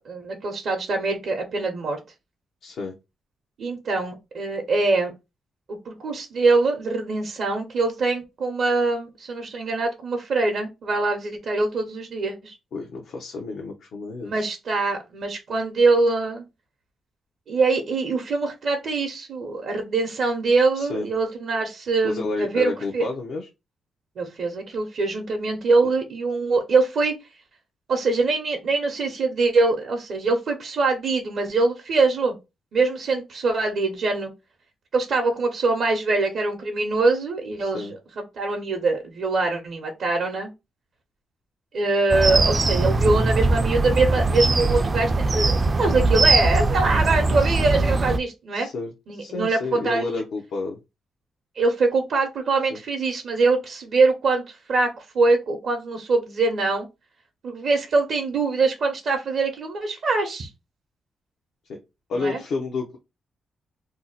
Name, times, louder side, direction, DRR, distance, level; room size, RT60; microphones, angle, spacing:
voice 1, 0.1-2.0 3.6-5.1 5.7-12.5 14.2-16.4 17.5-23.1 24.2-27.1 27.9-32.4 32.7-34.3 34.9-37.9 38.2-40.5 41.7-48.7 49.1-50.2 51.6-56.9 57.4-60.5 62.2-62.4, right 3 dB, 70° right, 3 dB, 0.6 m, -23 dB
voice 2, 2.6-2.9 12.7-14.5 20.7-21.1 22.0-23.5 37.6-37.9 48.5-50.8 52.7-52.8 61.7-61.8 62.1-63.0, left 3 dB, 80° left, 1 dB, 0.5 m, -30 dB
sound 1, 42.1-48.2, right 3 dB, 35° right, 0.3 m, -21 dB
2.6 x 2.0 x 3.8 m, 0.24 s
cardioid pair, 75°, 0 cm